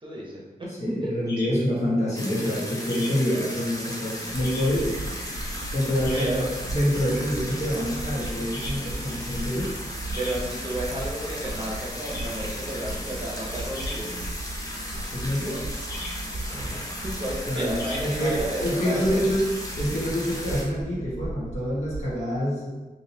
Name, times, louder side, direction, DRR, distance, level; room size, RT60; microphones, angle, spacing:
voice 1, 0.0-0.7 6.1-6.5 10.1-14.1 16.5-19.2, right 1 dB, 30° right, -4 dB, 0.9 m, -32 dB
voice 2, 0.8-5.0 5.7-9.7 15.1-15.7 17.5-19.5 19.8-22.7, equal, 45° left, -7 dB, 1.3 m, -26 dB
sound 1, 1.0-18.7, left 1 dB, 85° left, 1.0 m, -44 dB
sound 2, 2.1-20.6, left 1 dB, 20° left, 0.7 m, -36 dB
sound 3, 4.3-22.1, right 1 dB, 65° right, 0.5 m, -37 dB
3.8 x 2.8 x 2.8 m, 1.2 s
wide cardioid pair, 80°, 16 cm